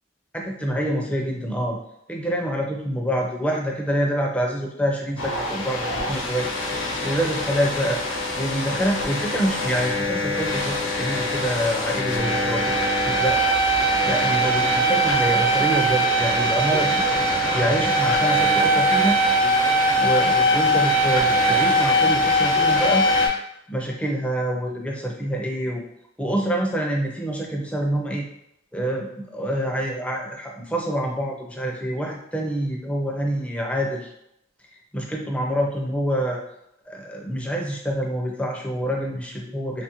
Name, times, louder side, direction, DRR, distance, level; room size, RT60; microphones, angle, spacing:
voice 1, 0.3-1.8 2.1-6.5 7.0-8.0 8.3-13.4 14.1-17.0 17.5-19.2 20.0-23.1 23.7-25.8 26.2-28.3 28.7-34.1 34.9-36.4 36.9-39.8, right 1 dB, 5° left, 0 dB, 0.4 m, -26 dB
sound 1, 5.2-23.3, right 1 dB, 75° left, 0.7 m, -22 dB
2.8 x 2.4 x 2.9 m, 0.79 s
head